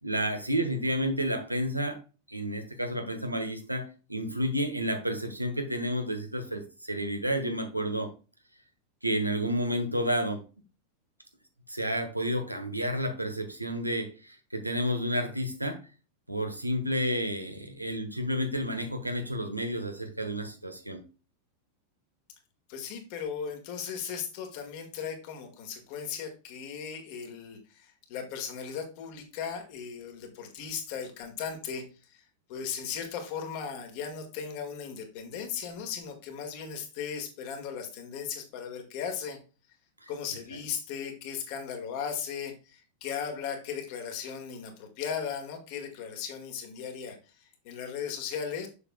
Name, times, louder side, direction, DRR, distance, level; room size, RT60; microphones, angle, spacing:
voice 1, 0.0-2.0 2.3-3.8 4.1-8.1 9.0-10.4 11.7-15.8 16.3-21.0 40.0-40.1, equal, 85° right, 5 dB, 1.2 m, -30 dB
voice 2, 22.7-32.2 32.5-39.4 40.1-48.7, left 7 dB, 45° left, 4 dB, 1.8 m, -37 dB
6.9 x 6.7 x 2.3 m, 0.33 s
figure-of-eight pair, 90°, 0 cm